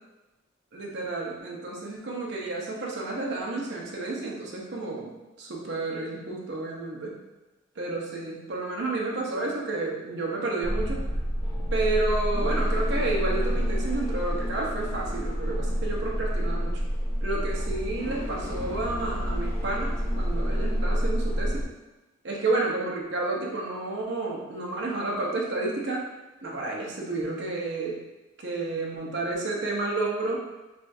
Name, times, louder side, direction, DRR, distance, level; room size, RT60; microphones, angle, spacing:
voice 1, 0.7-5.1 5.4-7.1 7.8-11.1 11.7-16.8 17.2-21.6 22.2-26.0 26.4-28.0 28.4-30.5, right 2 dB, 55° right, -3 dB, 0.8 m, -30 dB
sound 1, 10.6-21.6, equal, 15° left, 0.7 m, -28 dB
4.9 x 2.4 x 2.6 m, 1.1 s
head